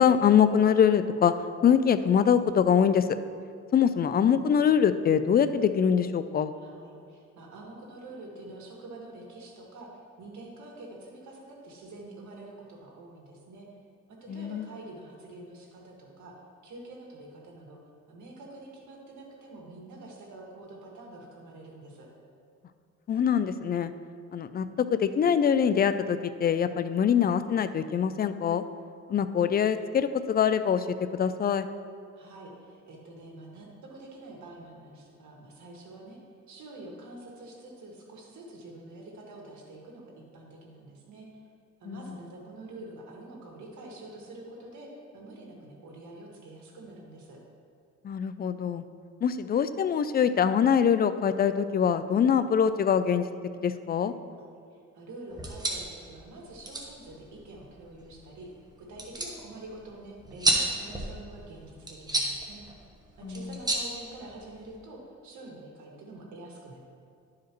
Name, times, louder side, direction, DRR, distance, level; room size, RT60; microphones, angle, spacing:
voice 1, 0.0-1.3 1.6-3.1 3.7-6.5 14.3-14.7 23.1-23.9 24.3-28.6 29.1-30.9 31.1-31.7 41.9-42.1 48.0-48.8 49.2-53.3 53.6-54.1 63.2-63.5, left 8 dB, 30° left, 11 dB, 0.4 m, -24 dB
voice 2, 6.5-9.9 10.2-13.7 14.1-16.3 16.6-17.8 18.1-22.1 32.1-36.2 36.5-41.4 41.8-47.4 54.4-58.5 58.9-62.6 63.2-66.8, right 2 dB, 70° right, -1 dB, 1.8 m, -46 dB
sound 1, 55.3-64.8, right 1 dB, 15° right, 1.1 m, -33 dB
11.5 x 4.8 x 3.0 m, 2.4 s
cardioid pair, 90°, 30 cm